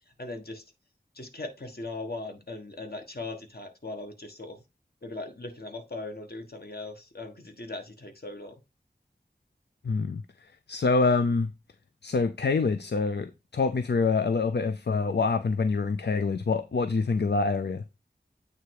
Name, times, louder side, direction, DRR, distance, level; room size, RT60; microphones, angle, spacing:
voice 1, 0.2-0.6 1.1-4.6 5.0-8.6, left 2 dB, 65° left, 1.5 m, -39 dB
voice 2, 9.8-11.5 12.0-17.8, left 4 dB, 80° left, 0.5 m, -26 dB
8.6 x 3.4 x 4.7 m
wide cardioid pair, 50°, 17 cm